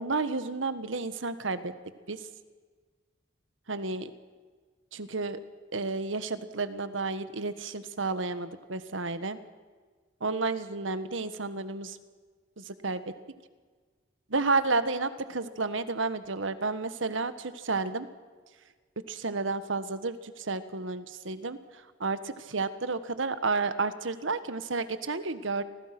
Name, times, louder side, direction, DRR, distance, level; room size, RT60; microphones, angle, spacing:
voice 1, 0.0-1.7 2.1-2.2 3.7-4.1 4.9-5.4 5.7-9.4 10.2-12.0 12.6-13.0 14.3-18.1 19.1-21.6 22.0-25.6, right 3 dB, 80° right, 12 dB, 1.4 m, -31 dB
28.5 x 20.5 x 6.0 m, 1.5 s
head